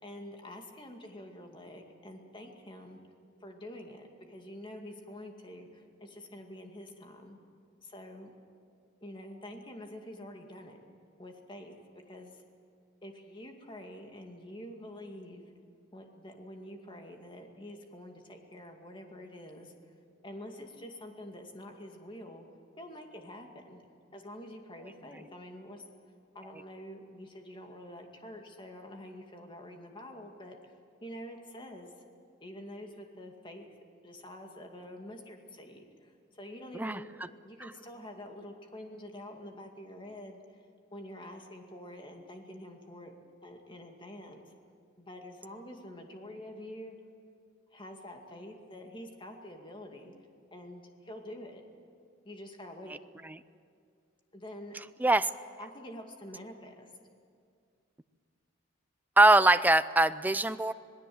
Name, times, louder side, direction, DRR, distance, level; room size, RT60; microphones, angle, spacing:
voice 1, 0.0-3.0 3.4-7.4 7.8-8.3 9.0-10.8 11.2-11.8 12.1-12.4 13.0-15.4 15.9-19.7 20.2-22.5 22.8-23.8 24.1-25.8 26.3-30.7 31.0-32.1 32.4-33.7 34.0-37.1 37.4-40.6 40.9-43.1 43.4-44.4 45.0-47.0 47.7-50.1 50.5-51.6 52.2-53.0 54.3-54.8 55.6-56.9, left 1 dB, 25° left, 3 dB, 2.2 m, -47 dB
voice 2, 59.2-60.7, right 2 dB, 10° right, 13 dB, 0.5 m, -22 dB
26.5 x 18.5 x 7.9 m, 2.3 s
head